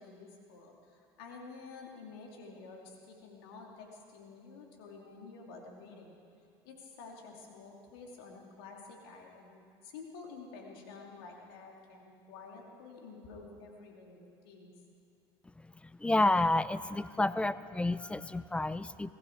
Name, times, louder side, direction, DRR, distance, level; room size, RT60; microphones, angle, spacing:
voice 1, 0.0-6.1 6.6-14.7, left 4 dB, 85° left, 0 dB, 2.6 m, -50 dB
voice 2, 15.8-19.1, left 2 dB, 10° left, 16 dB, 0.5 m, -30 dB
21.0 x 14.5 x 4.6 m, 2.4 s
supercardioid pair, 90°, 12 cm